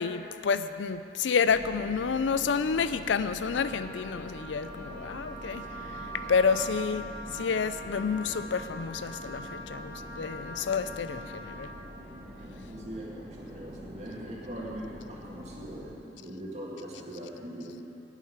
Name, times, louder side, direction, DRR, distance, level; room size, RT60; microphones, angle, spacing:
voice 1, 0.0-5.7 5.9-11.7, left 5 dB, 75° left, 12 dB, 0.4 m, -29 dB
sound 1, 1.5-15.9, equal, 20° right, 1.8 m, -45 dB
Wind instrument woodwind instrument, 3.4-11.7, right 1 dB, 15° left, 1.7 m, -43 dB
voice 2, 12.4-17.8, right 1 dB, 35° right, -4 dB, 2.1 m, -41 dB
11.0 x 6.7 x 9.4 m, 3.0 s
head